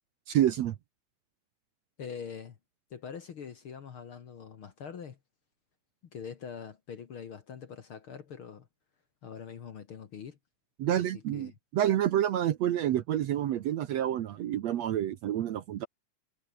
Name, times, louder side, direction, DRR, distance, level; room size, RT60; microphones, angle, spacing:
voice 1, 0.3-0.8 10.8-15.9, right 11 dB, 65° right, 1.9 m, -28 dB
voice 2, 2.0-2.6 2.9-5.2 6.1-8.7 9.2-10.4 10.9-11.6, left 7 dB, 50° left, 1.9 m, -43 dB
omnidirectional pair, 3.8 m